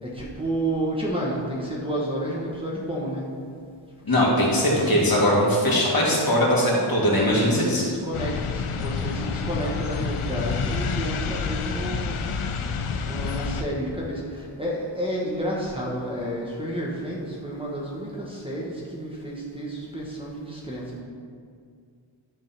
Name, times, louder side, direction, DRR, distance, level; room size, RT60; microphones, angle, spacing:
voice 1, 0.0-3.2 4.1-5.0 7.1-12.2 13.0-21.0, right 1 dB, 10° right, -4 dB, 1.2 m, -31 dB
voice 2, 4.0-7.9, left 1 dB, 45° left, -5 dB, 2.1 m, -20 dB
sound 1, 8.1-13.6, left 5 dB, 85° left, 0.7 m, -28 dB
11.0 x 3.7 x 5.8 m, 2.2 s
wide cardioid pair, 110°, 49 cm